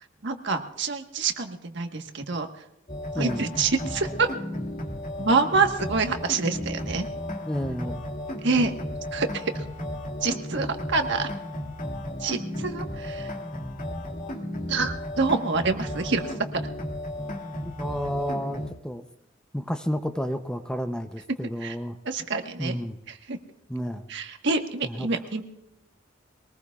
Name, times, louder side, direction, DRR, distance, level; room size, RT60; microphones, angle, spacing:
voice 1, 0.2-2.5 3.2-4.3 5.2-7.1 8.4-8.7 9.1-9.5 10.2-11.3 12.2-13.3 14.7-16.2 16.5-16.6 21.6-21.7 22.0-22.7 23.3-23.4 24.1-25.4, right 4 dB, 65° right, 5 dB, 1.4 m, -26 dB
sound 1, 2.9-18.7, left 1 dB, 45° left, 2.1 m, -34 dB
voice 2, 3.1-3.5 7.5-8.0 17.6-19.1 19.5-22.0 22.6-23.0 23.7-24.1 24.8-25.1, equal, 5° left, 8 dB, 0.7 m, -31 dB
23.0 x 19.0 x 2.4 m, 0.85 s
head